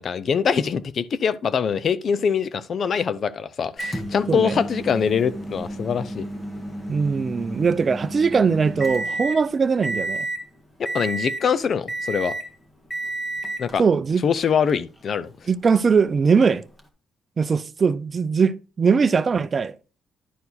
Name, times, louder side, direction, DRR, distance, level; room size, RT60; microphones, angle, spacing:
voice 1, 0.0-6.3 10.8-12.3 13.6-13.8 14.2-15.3, left 6 dB, 55° left, 0.5 m, -23 dB
Microwave oven, 3.8-9.4 9.8-10.4 10.8-11.5 11.9-12.5 12.9-13.7 14.7-14.8 16.8-16.9, right 1 dB, 20° left, 1.8 m, -31 dB
voice 2, 6.9-10.3 13.8-14.2 15.5-16.6 17.4-19.7, right 5 dB, 40° right, 0.5 m, -20 dB
11.0 x 4.6 x 4.1 m
cardioid pair, 90°, 0 cm